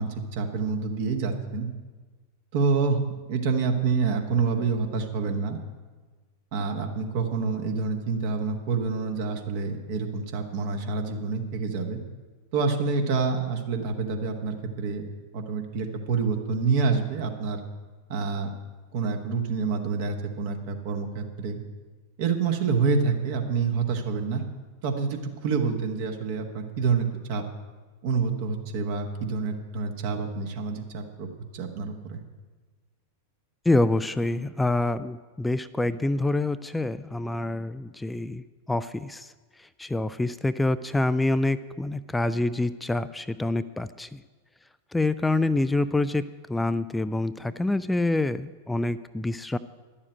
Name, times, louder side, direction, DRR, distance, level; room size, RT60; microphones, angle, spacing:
voice 1, 0.0-1.7 2.5-3.0 3.3-5.6 6.5-12.0 12.5-15.0 15.3-17.6 18.1-18.5 18.9-21.6 22.2-24.4 24.8-27.4 28.0-31.3 31.5-32.2, right 5 dB, 50° right, 4 dB, 1.3 m, -27 dB
voice 2, 33.7-38.4 38.7-39.3 39.6-44.2 44.9-46.2 46.5-49.6, left 2 dB, 5° left, 13 dB, 0.4 m, -26 dB
11.0 x 7.2 x 8.9 m, 1.4 s
figure-of-eight pair, 90°, 0 cm